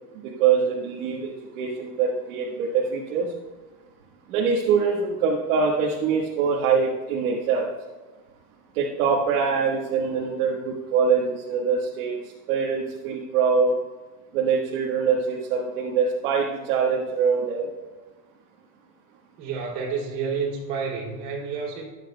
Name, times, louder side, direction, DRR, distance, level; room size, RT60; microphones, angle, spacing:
voice 1, 0.2-3.3 4.3-7.7 8.7-12.2 12.5-13.7 14.3-17.7, right 5 dB, 55° right, -2 dB, 1.4 m, -24 dB
voice 2, 19.4-21.8, right 5 dB, 35° right, -2 dB, 3.0 m, -29 dB
21.5 x 8.9 x 2.3 m, 1.3 s
supercardioid pair, 165°, 44 cm